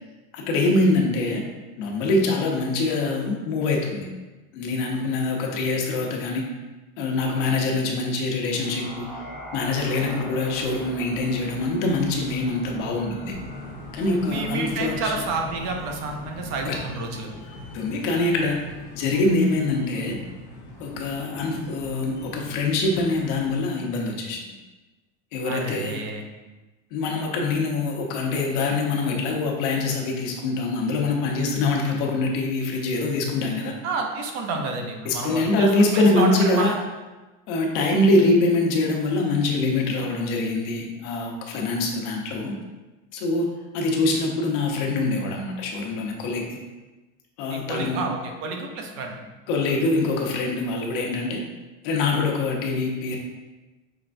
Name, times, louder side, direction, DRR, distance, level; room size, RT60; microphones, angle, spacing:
voice 1, 0.3-1.4 1.8-4.1 4.5-6.5 7.0-9.1 9.5-13.4 13.9-15.1 16.6-16.7 17.7-18.6 18.9-20.2 20.8-24.4 25.3-26.0 26.9-33.7 35.0-36.7 37.5-42.5 43.1-43.5 43.7-46.6 47.4-48.0 49.5-51.4 51.8-53.2, left 2 dB, 65° left, 0 dB, 1.0 m, -24 dB
sound 1, 8.5-16.9, left 2 dB, 5° right, 1.4 m, -40 dB
sound 2, 13.2-23.6, left 2 dB, 50° left, 1.3 m, -42 dB
voice 2, 14.3-17.4 25.4-26.2 33.8-36.7 47.5-49.2, right 3 dB, 45° right, 2 dB, 0.7 m, -30 dB
5.8 x 3.3 x 2.6 m, 1.2 s
cardioid pair, 170°, 38 cm